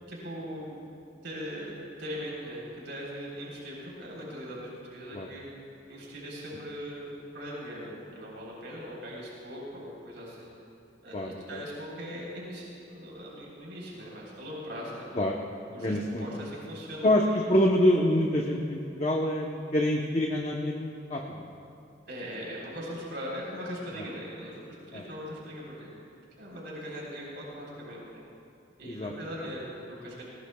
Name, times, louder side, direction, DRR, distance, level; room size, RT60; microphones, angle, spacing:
voice 1, 0.1-0.7 1.2-5.5 5.9-10.4 11.0-15.1 15.7-17.1 22.1-25.9 26.4-28.2 28.8-30.2, equal, 80° right, -4 dB, 3.6 m, -40 dB
voice 2, 11.1-11.6 15.1-15.4 15.8-16.3 17.0-17.2 17.5-21.5 24.0-24.1 24.9-25.0 28.8-29.1, left 1 dB, 35° left, 0 dB, 0.8 m, -26 dB
19.5 x 19.0 x 2.3 m, 2.7 s
head